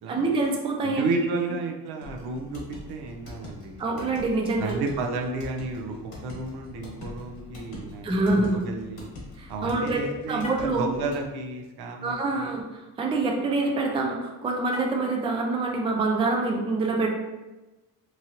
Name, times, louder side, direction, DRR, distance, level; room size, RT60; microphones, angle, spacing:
voice 1, 0.1-1.1 3.8-4.8 8.0-8.6 9.4-10.0 10.3-10.9 12.0-17.1, right 3 dB, 15° right, 1 dB, 0.3 m, -26 dB
voice 2, 0.8-4.1 4.6-9.1 9.5-12.6, right 3 dB, 75° right, 2 dB, 0.6 m, -32 dB
sound 1, 2.0-11.3, left 2 dB, 65° left, 1.2 m, -43 dB
Car, 10.3-10.8 14.6-15.1, left 2 dB, 15° left, 0.9 m, -38 dB
3.0 x 2.5 x 2.8 m, 1.1 s
cardioid pair, 125°, 38 cm